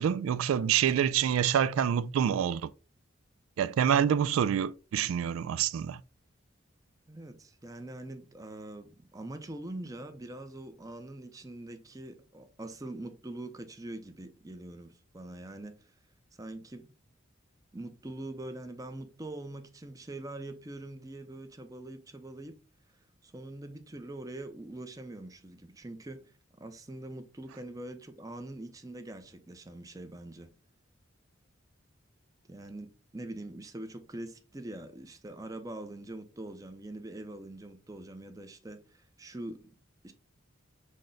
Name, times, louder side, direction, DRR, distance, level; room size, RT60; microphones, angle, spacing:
voice 1, 0.0-2.7 3.6-6.0, right 8 dB, 90° right, 0.3 m, -27 dB
voice 2, 7.1-15.9 16.4-16.9 17.7-22.6 23.2-30.5 32.5-39.7 40.0-40.1, right 1 dB, 15° right, 0.6 m, -43 dB
6.3 x 2.1 x 3.7 m
head